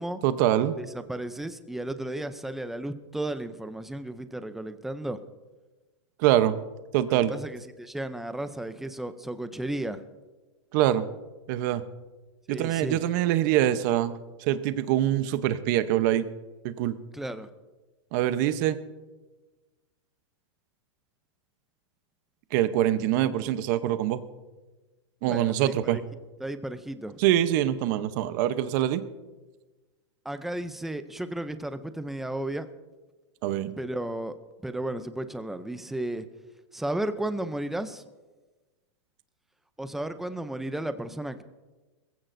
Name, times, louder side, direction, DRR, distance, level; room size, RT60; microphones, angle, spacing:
voice 1, 0.2-0.7 6.2-6.6 6.9-7.3 10.7-11.1 11.5-11.8 12.5-14.1 14.4-16.3 16.6-17.0 18.1-18.8 22.5-24.2 25.2-26.0 27.2-29.0 33.4-33.8, right 12 dB, 40° right, 12 dB, 0.8 m, -24 dB
voice 2, 0.8-5.2 7.1-10.0 12.5-13.0 17.1-17.5 25.3-26.0 26.4-27.2 30.3-32.7 33.8-34.3 34.6-36.3 36.7-38.0 39.8-41.4, right 1 dB, ahead, 11 dB, 0.4 m, -34 dB
21.0 x 15.5 x 2.6 m, 1.2 s
supercardioid pair, 160°, 16 cm